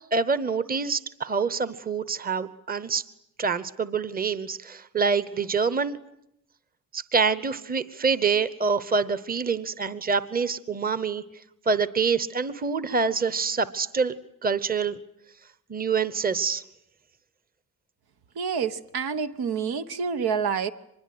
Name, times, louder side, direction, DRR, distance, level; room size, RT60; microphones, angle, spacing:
voice 1, 0.1-3.0 3.4-6.0 6.9-11.2 11.7-14.1 14.4-15.0 15.7-16.6, right 5 dB, 25° right, 1.0 m, -26 dB
voice 2, 18.3-20.7, right 6 dB, 80° right, 1.3 m, -28 dB
25.0 x 21.5 x 9.5 m
wide cardioid pair, 135°, 37 cm